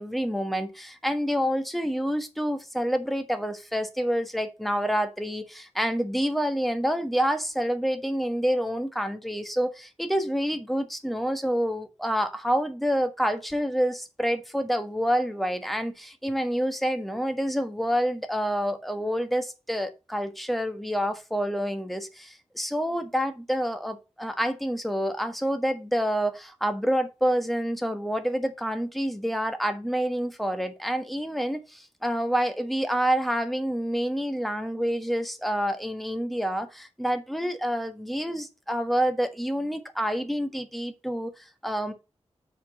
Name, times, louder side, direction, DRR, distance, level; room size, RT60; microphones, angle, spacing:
voice 1, 0.0-41.9, equal, ahead, 1.4 m, -28 dB
6.3 x 5.0 x 6.1 m
wide cardioid pair, 95°, 11 cm